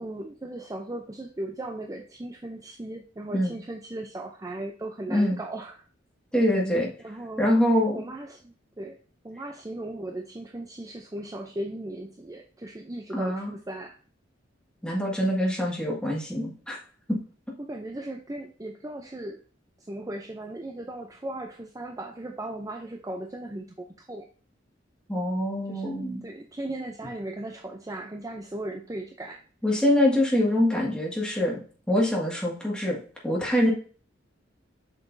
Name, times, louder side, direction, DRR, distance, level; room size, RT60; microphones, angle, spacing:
voice 1, 0.0-5.8 7.0-7.5 7.9-9.0 9.2-14.0 17.6-19.4 19.8-23.7 24.0-24.3 25.7-25.9 26.2-29.4, right 1 dB, 20° right, 3 dB, 0.5 m, -37 dB
voice 2, 6.3-6.9 7.4-8.0 13.1-13.5 14.8-16.8 17.1-17.2 25.1-26.2 29.6-31.6 31.9-33.0 33.2-33.7, left 1 dB, 5° left, -3 dB, 1.9 m, -24 dB
7.0 x 5.9 x 2.6 m, 0.41 s
head